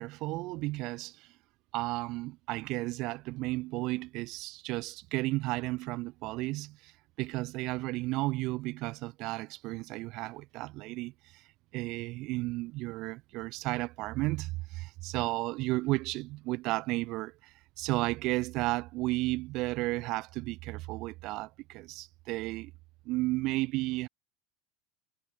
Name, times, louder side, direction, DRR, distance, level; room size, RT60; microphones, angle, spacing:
voice 1, 0.0-1.3 1.7-11.5 11.7-22.7 23.0-24.1, right 21 dB, 55° right, 2.8 m, -33 dB
supercardioid pair, 120°, 0 cm